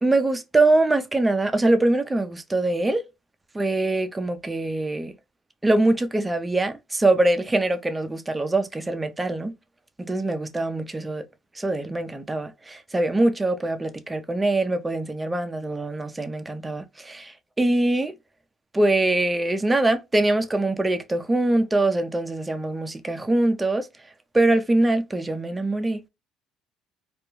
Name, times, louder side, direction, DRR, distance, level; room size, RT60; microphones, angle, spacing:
voice 1, 0.0-3.0 3.5-5.1 5.6-9.5 10.0-11.2 11.6-18.1 18.7-23.9 24.3-26.1, right 2 dB, 15° right, 0.4 m, -23 dB
2.2 x 2.1 x 3.1 m
cardioid pair, 100°, 0 cm